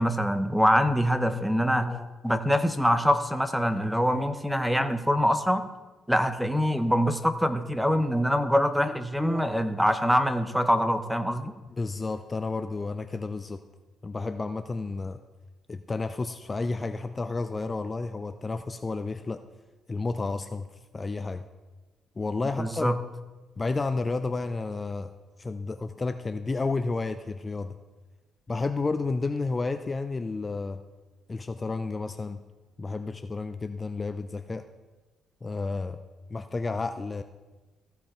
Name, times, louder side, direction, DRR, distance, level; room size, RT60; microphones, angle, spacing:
voice 1, 0.0-5.6 6.1-11.5 22.6-22.9, equal, ahead, 10 dB, 0.7 m, -24 dB
voice 2, 11.8-13.6 14.0-15.2 15.7-19.4 19.9-20.7 20.9-21.5 22.2-23.0 23.6-25.1 25.4-27.8 28.5-30.8 31.3-32.4 32.8-34.6 35.4-36.0 36.3-37.2, left 3 dB, 25° left, 9 dB, 0.4 m, -31 dB
15.0 x 5.7 x 4.3 m, 1.2 s
cardioid pair, 90°, 0 cm